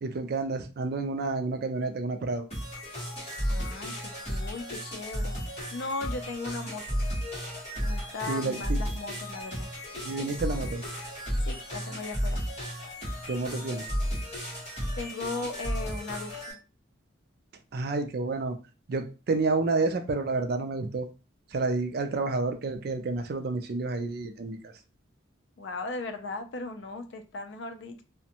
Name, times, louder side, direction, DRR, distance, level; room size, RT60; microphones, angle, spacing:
voice 1, 0.0-2.4 8.3-8.8 10.0-10.8 13.3-13.8 17.7-18.6 18.9-21.1 21.5-24.6, right 3 dB, 50° right, 7 dB, 0.3 m, -29 dB
sound 1, 2.5-16.5, equal, 30° left, 1.2 m, -33 dB
voice 2, 3.5-7.0 7.8-9.7 11.4-12.4 15.0-16.6 25.6-28.0, left 3 dB, 65° left, 7 dB, 0.4 m, -37 dB
2.5 x 2.1 x 2.8 m, 0.33 s
head